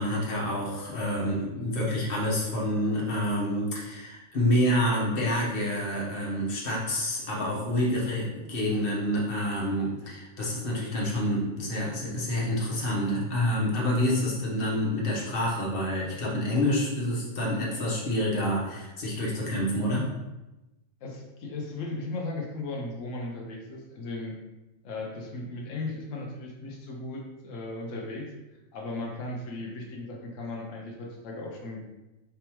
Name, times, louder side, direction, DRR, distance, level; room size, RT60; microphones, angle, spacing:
voice 1, 0.0-20.0, left 1 dB, 45° left, -4 dB, 1.3 m, -28 dB
voice 2, 21.0-24.4 24.8-28.3 28.7-31.9, left 2 dB, 65° left, -1 dB, 1.2 m, -36 dB
4.9 x 3.5 x 3.0 m, 1.0 s
omnidirectional pair, 1.5 m